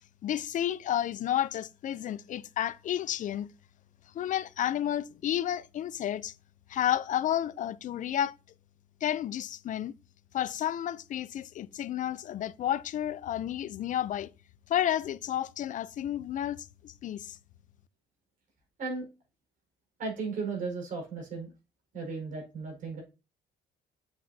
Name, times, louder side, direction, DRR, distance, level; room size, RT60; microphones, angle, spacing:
voice 1, 0.2-3.5 4.1-6.3 6.7-8.3 9.0-9.9 10.3-14.3 14.7-17.4, left 11 dB, 50° left, 0.5 m, -31 dB
voice 2, 20.0-21.5 21.9-23.0, right 4 dB, 50° right, 4.8 m, -35 dB
8.0 x 7.3 x 2.7 m
cardioid pair, 110°, 17 cm